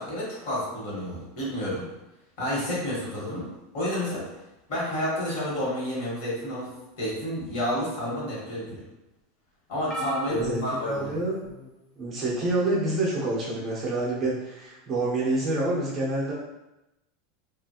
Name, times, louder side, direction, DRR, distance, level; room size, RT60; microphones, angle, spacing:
voice 1, 0.0-1.9 2.4-4.2 4.7-8.8 9.7-11.1, left 1 dB, 50° left, -6 dB, 1.3 m, -30 dB
sound 1, 9.9-11.7 12.4-12.7 14.0-14.1, equal, 25° left, 0.3 m, -37 dB
voice 2, 10.3-11.3 12.0-16.3, right 2 dB, 20° right, -5 dB, 0.6 m, -27 dB
2.9 x 2.4 x 2.8 m, 0.95 s
supercardioid pair, 175°, 0 cm